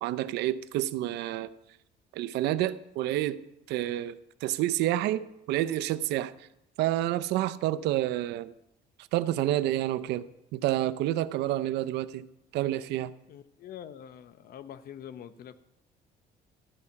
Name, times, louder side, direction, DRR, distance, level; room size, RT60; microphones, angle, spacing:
voice 1, 0.0-1.5 2.1-3.4 3.7-6.3 6.8-8.5 9.1-10.2 10.5-12.3 12.5-13.1, right 14 dB, 85° right, 0.6 m, -29 dB
voice 2, 13.3-15.6, left 9 dB, 60° left, 0.8 m, -45 dB
13.5 x 5.8 x 9.6 m
cardioid pair, 110°, 17 cm